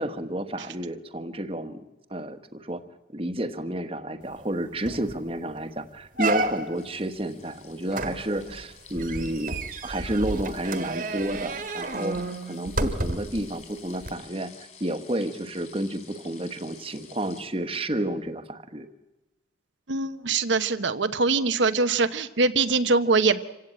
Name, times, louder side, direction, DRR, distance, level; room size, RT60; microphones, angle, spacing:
voice 1, 0.0-1.8 2.1-2.8 3.1-12.2 12.4-14.5 14.8-18.9, right 1 dB, 30° right, 9 dB, 1.3 m, -31 dB
sound 1, 4.4-4.5 4.9-5.2 5.6-5.7 6.2-6.9 7.9-13.4 14.0-14.1, right 2 dB, 45° right, 1.6 m, -31 dB
sound 2, 6.7-17.5, left 6 dB, 40° left, 4.5 m, -51 dB
voice 2, 19.9-23.4, right 4 dB, 75° right, 10 dB, 1.0 m, -23 dB
27.0 x 16.5 x 8.8 m, 1.0 s
head